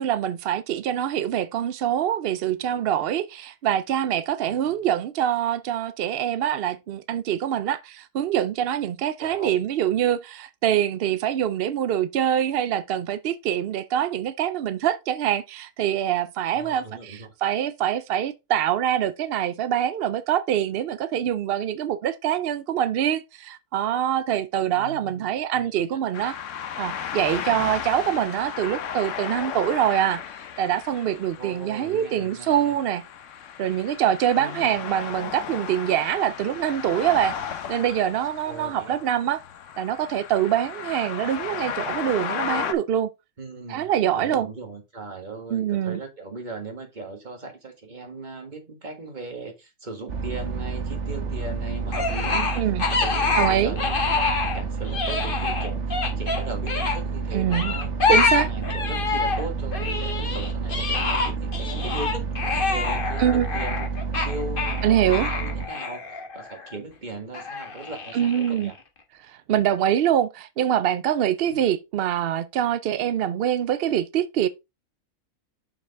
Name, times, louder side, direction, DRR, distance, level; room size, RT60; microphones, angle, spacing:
voice 1, 0.0-26.4 26.8-30.2 30.6-33.0 33.6-37.4 37.7-39.4 39.8-43.1 43.7-44.5 45.5-46.0 52.6-52.8 53.3-53.8 57.3-57.7 58.1-58.5 63.2-63.5 64.8-65.3 68.1-68.7 69.2-74.5, right 10 dB, 70° right, 0.5 m, -24 dB
voice 2, 4.4-4.8 9.2-9.6 16.5-17.3 24.8-26.0 31.4-32.7 34.4-34.8 38.4-39.0 43.4-52.5 52.9-57.9 58.4-62.3 62.7-63.9 64.2-68.8 71.5-71.6, right 2 dB, 30° right, 1.9 m, -38 dB
sound 1, 26.1-42.7, left 8 dB, 65° left, 1.1 m, -35 dB
sound 2, 50.1-65.7, right 5 dB, 55° right, 1.4 m, -30 dB
sound 3, 51.9-54.6 54.8-57.0 57.5-59.5 59.7-66.7 67.3-68.7, left 4 dB, 40° left, 1.4 m, -26 dB
6.6 x 5.9 x 3.5 m
omnidirectional pair, 1.5 m